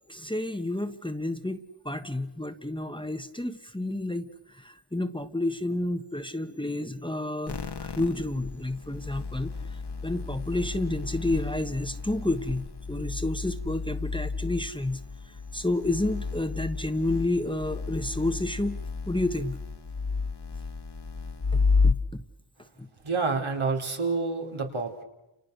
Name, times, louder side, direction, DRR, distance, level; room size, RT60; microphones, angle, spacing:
voice 1, 0.1-19.6 21.5-22.3 22.8-22.9, left 2 dB, 10° left, 8 dB, 1.3 m, -30 dB
sound 1, 7.5-21.9, left 4 dB, 55° left, 1.7 m, -32 dB
voice 2, 23.0-25.0, right 4 dB, 75° right, 2 dB, 3.9 m, -28 dB
30.0 x 29.0 x 6.8 m, 0.95 s
wide cardioid pair, 80°, 50 cm